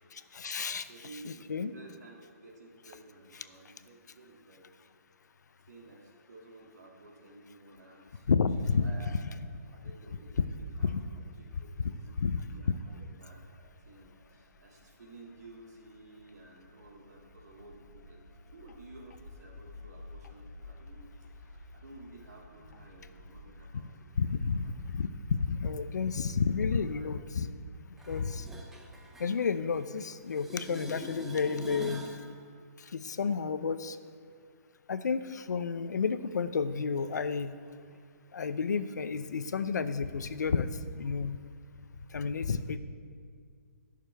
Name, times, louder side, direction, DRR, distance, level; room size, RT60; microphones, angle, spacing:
voice 1, 0.1-0.9 1.2-1.7 8.3-8.9 9.8-9.9 10.4-10.5 10.8-11.0 11.8-12.4 24.2-27.5 28.1-28.5 29.2-32.1 32.8-34.0 34.9-37.5 38.3-41.4 42.1-42.8, left 5 dB, 90° left, 12 dB, 0.6 m, -31 dB
voice 2, 0.9-4.7 5.7-8.5 8.8-9.4 9.7-23.9 24.2-24.6 25.1-25.2 26.7-27.2 27.5-27.6 32.3-32.5, right 2 dB, 70° right, -1 dB, 2.3 m, -54 dB
sound 1, 13.5-23.6, left 2 dB, 35° left, 2.8 m, -52 dB
sound 2, 28.0-30.0 30.3-32.2 38.0-38.1, right 1 dB, 5° right, 0.5 m, -44 dB
20.0 x 6.7 x 3.4 m, 2.1 s
hypercardioid pair, 165°, 9 cm